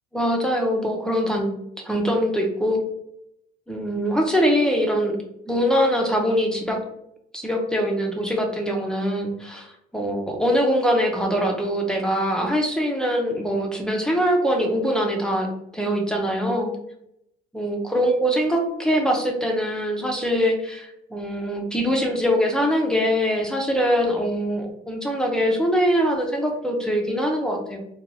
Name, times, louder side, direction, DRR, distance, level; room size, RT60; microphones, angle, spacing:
voice 1, 0.1-1.5 1.8-2.8 3.7-5.2 5.5-6.8 7.3-15.5 15.7-16.7 17.5-27.8, equal, 5° left, 0 dB, 0.5 m, -23 dB
2.9 x 2.2 x 2.5 m, 0.76 s
cardioid pair, 110°, 17 cm